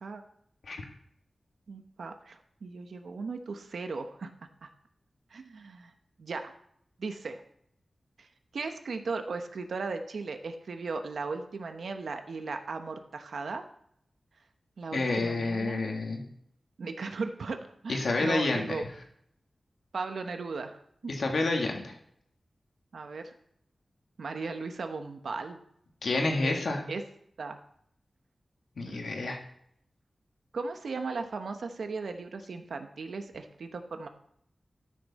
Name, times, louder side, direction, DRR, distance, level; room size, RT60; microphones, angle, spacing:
voice 1, 1.7-4.3 4.6-4.7 5.3-5.9 6.2-6.5 7.0-7.4 8.2-8.3 8.5-13.6 14.8-15.8 16.8-18.8 19.9-21.1 22.9-23.3 24.2-25.6 26.3-26.6 26.9-27.0 27.4-27.6 28.8-29.2 30.5-34.1, right 4 dB, 90° right, 7 dB, 1.0 m, -37 dB
voice 2, 14.9-16.2 17.9-18.8 21.1-21.9 26.0-26.8 28.8-29.4, left 2 dB, 75° left, 2 dB, 1.9 m, -29 dB
13.0 x 6.6 x 4.2 m, 0.71 s
wide cardioid pair, 100°, 0 cm